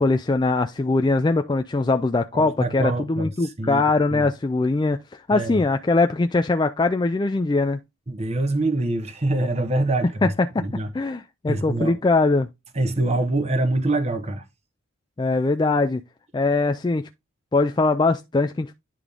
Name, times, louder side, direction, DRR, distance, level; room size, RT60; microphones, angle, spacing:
voice 1, 0.0-5.0 5.3-7.8 10.2-10.3 10.5-10.6 10.9-12.5 15.2-16.0 16.3-17.1 17.5-18.7, left 3 dB, 20° left, 0.3 m, -21 dB
voice 2, 2.3-3.8 4.1-4.3 5.3-5.6 8.1-10.3 10.6-10.9 11.5-12.0 12.7-14.4, right 2 dB, 30° right, 0.9 m, -25 dB
10.0 x 3.7 x 3.4 m
head